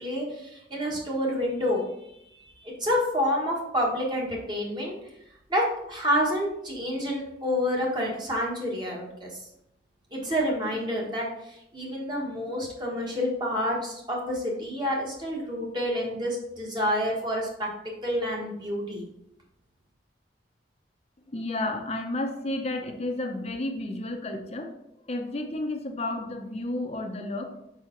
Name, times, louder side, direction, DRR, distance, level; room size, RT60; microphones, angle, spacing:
voice 1, 0.0-5.0 5.5-9.3 10.1-17.7 18.0-19.1, equal, 25° right, -2 dB, 1.4 m, -28 dB
voice 2, 21.3-24.7 25.1-27.5, left 2 dB, 35° left, 4 dB, 0.8 m, -31 dB
4.8 x 4.8 x 4.4 m, 0.79 s
head